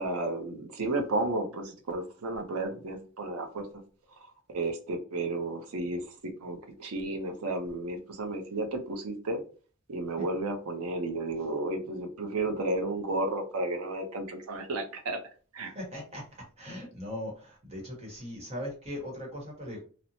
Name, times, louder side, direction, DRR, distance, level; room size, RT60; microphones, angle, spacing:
voice 1, 0.0-3.7 4.1-4.2 4.5-9.4 9.9-15.2 15.5-15.7, right 2 dB, 85° right, 5 dB, 0.6 m, -33 dB
voice 2, 15.7-16.2 16.6-19.8, left 1 dB, 30° right, -1 dB, 1.0 m, -39 dB
2.9 x 2.0 x 2.7 m, 0.39 s
head